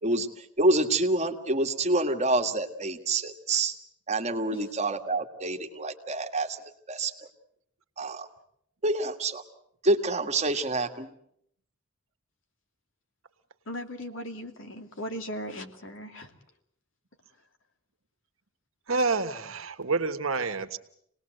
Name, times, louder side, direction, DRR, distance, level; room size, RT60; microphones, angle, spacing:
voice 1, 0.0-3.7 4.1-6.6 6.9-7.1 8.0-8.3 8.8-9.4 9.8-11.1, right 2 dB, 30° right, 4 dB, 1.9 m, -27 dB
voice 2, 13.7-16.3, equal, 65° left, 4 dB, 2.7 m, -38 dB
voice 3, 18.9-20.8, right 4 dB, 75° right, 8 dB, 1.5 m, -28 dB
26.5 x 19.5 x 7.9 m, 0.71 s
head